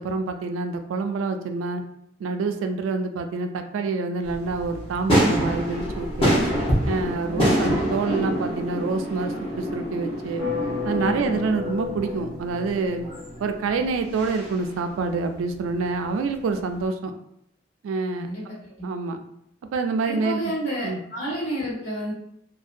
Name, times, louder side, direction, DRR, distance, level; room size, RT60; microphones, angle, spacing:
voice 1, 0.0-1.8 2.2-6.4 6.9-10.4 10.8-13.1 13.4-17.1 17.8-18.5 18.8-19.2 19.7-20.5 20.8-21.0, right 4 dB, 90° right, 6 dB, 0.3 m, -27 dB
sound 1, 4.2-16.3 16.8-16.9, equal, 30° left, 0.7 m, -27 dB
voice 2, 7.2-7.7 11.0-11.3 18.1-18.8 20.0-22.1, right 1 dB, 65° left, -7 dB, 1.4 m, -30 dB
sound 2, 10.4-14.1, left 5 dB, ahead, 0.9 m, -33 dB
2.6 x 2.1 x 2.4 m, 0.72 s
head